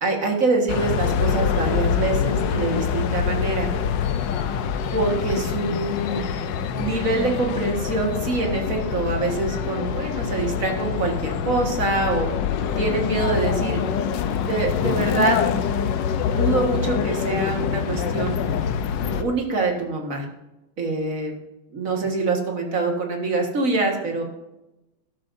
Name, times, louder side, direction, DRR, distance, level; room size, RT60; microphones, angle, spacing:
voice 1, 0.0-3.7 4.9-6.2 6.7-12.3 12.8-14.0 14.4-15.5 16.4-18.7 19.1-20.3 20.8-21.3 21.7-24.2, right 3 dB, 40° right, 2 dB, 1.9 m, -25 dB
sound 1, 0.7-19.2, left 7 dB, 65° left, 1.2 m, -25 dB
13.0 x 12.5 x 2.7 m, 0.96 s
omnidirectional pair, 2.4 m